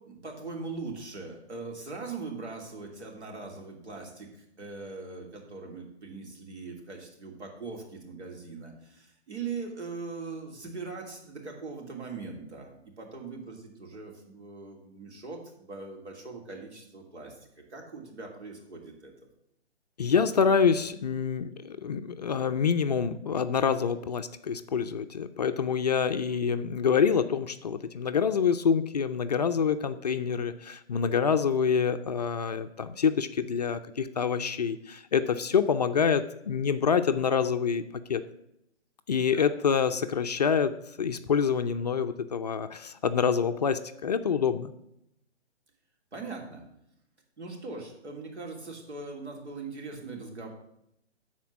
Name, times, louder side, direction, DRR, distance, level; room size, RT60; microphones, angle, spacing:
voice 1, 0.0-19.1 39.3-39.5 46.1-46.6 47.4-50.5, right 4 dB, 80° right, 1 dB, 3.1 m, -41 dB
voice 2, 20.0-37.8 38.1-38.2 39.1-40.7 41.0-44.7, left 6 dB, 40° left, 8 dB, 0.4 m, -26 dB
10.5 x 4.4 x 7.2 m, 0.80 s
hypercardioid pair, 150°, 34 cm